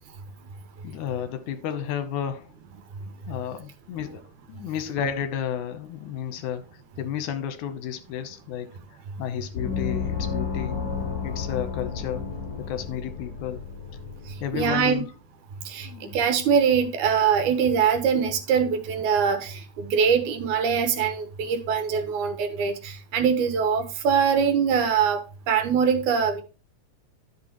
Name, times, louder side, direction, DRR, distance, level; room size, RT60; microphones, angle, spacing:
voice 1, 0.8-2.5 3.3-8.8 9.2-10.8 11.2-12.3 12.6-13.6 14.4-15.1 15.8-16.2, left 9 dB, 80° left, 2.4 m, -32 dB
Gong, 9.5-14.8, left 6 dB, 50° left, 2.4 m, -32 dB
voice 2, 14.3-15.0 15.7-25.2 25.5-26.4, right 7 dB, 80° right, 2.5 m, -23 dB
11.5 x 6.0 x 3.0 m
omnidirectional pair, 3.5 m